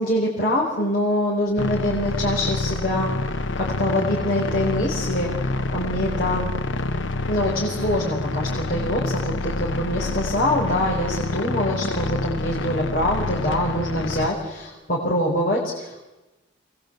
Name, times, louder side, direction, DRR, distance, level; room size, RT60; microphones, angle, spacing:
voice 1, 0.0-3.1 3.6-6.5 7.3-16.1, left 1 dB, 50° left, -3 dB, 5.1 m, -24 dB
sound 1, 1.6-14.3, left 2 dB, 75° left, 1.0 m, -27 dB
28.0 x 21.5 x 8.3 m, 1.1 s
head